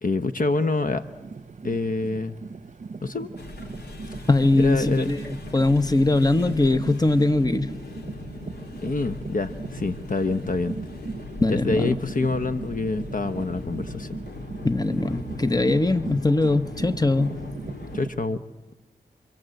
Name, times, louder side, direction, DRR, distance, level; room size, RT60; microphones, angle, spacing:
voice 1, 0.0-1.0 1.6-2.3 3.0-3.3 4.6-5.1 8.8-10.7 11.5-14.2 17.9-18.4, left 3 dB, 55° left, 1.0 m, -26 dB
sound 1, 1.0-18.2, right 4 dB, 45° right, 0.9 m, -39 dB
sound 2, 3.4-18.0, left 2 dB, 80° left, 3.6 m, -39 dB
voice 2, 4.3-7.7 11.4-12.0 14.6-17.5, left 2 dB, 25° left, 1.3 m, -21 dB
28.0 x 24.5 x 7.9 m
cardioid pair, 45°, 17 cm